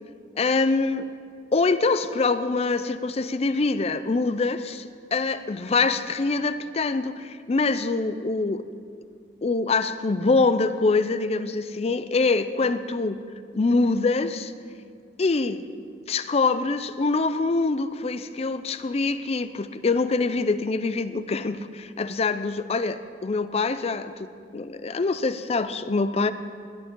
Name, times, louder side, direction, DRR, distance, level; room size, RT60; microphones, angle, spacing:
voice 1, 0.4-1.1 1.5-8.6 9.4-13.2 13.5-14.5 15.2-15.6 16.1-26.3, left 3 dB, 35° left, 13 dB, 0.5 m, -24 dB
17.0 x 11.0 x 3.7 m, 2.2 s
head